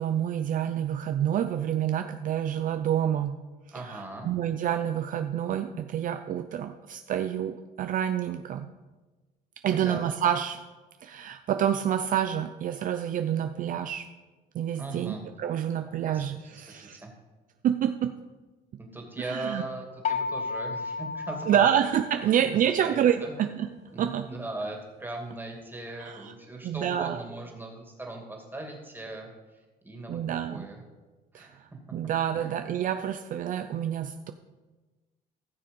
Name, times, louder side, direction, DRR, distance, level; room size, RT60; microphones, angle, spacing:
voice 1, 0.0-3.4 3.7-8.7 9.6-10.6 11.0-14.1 14.5-17.0 17.6-18.2 19.2-19.6 21.5-23.7 24.0-24.3 26.0-26.3 26.6-27.2 30.1-30.7 31.3-31.5 31.9-34.3, right 10 dB, 55° right, 8 dB, 0.5 m, -28 dB
voice 2, 3.7-4.3 9.7-10.1 14.7-15.2 16.0-17.1 18.8-21.7 22.3-23.3 23.9-29.3 29.8-30.2 30.5-30.8 31.3-31.6 32.3-32.5, right 2 dB, 10° right, 1 dB, 2.5 m, -39 dB
sound 1, 20.0-22.8, left 5 dB, 45° left, 0.6 m, -34 dB
15.0 x 6.6 x 5.4 m, 1.2 s
cardioid pair, 110°, 17 cm